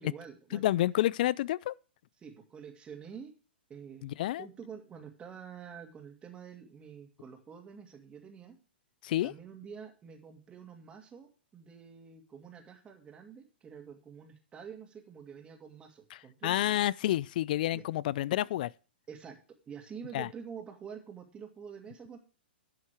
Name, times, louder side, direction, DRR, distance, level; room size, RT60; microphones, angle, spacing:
voice 1, 0.0-0.7 2.2-3.3 3.7-8.6 9.2-16.8 17.7-17.8 19.1-19.4 19.7-22.2, right 7 dB, 15° right, 2.3 m, -47 dB
voice 2, 0.5-1.7 4.0-4.5 9.0-9.3 16.1-18.7 20.1-20.3, left 14 dB, 55° left, 0.4 m, -29 dB
11.5 x 7.1 x 4.7 m
hypercardioid pair, 130°, 6 cm